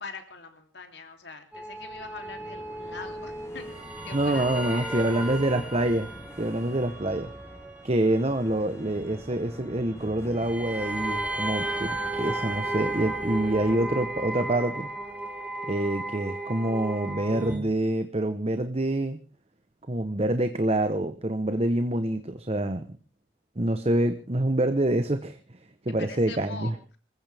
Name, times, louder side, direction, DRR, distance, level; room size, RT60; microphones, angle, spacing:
voice 1, 0.0-3.7 4.0-5.5 26.0-26.7, left 4 dB, 60° left, 6 dB, 3.1 m, -43 dB
sound 1, 1.5-17.6, right 2 dB, 5° right, 4.7 m, -35 dB
sound 2, 1.7-15.7, left 1 dB, 15° left, 1.2 m, -46 dB
voice 2, 4.1-6.1 6.4-7.3 7.8-14.9 15.7-19.2 19.9-22.9 23.6-25.4 25.8-26.7, right 1 dB, 30° right, 9 dB, 1.0 m, -26 dB
25.5 x 15.0 x 3.5 m, 0.36 s
head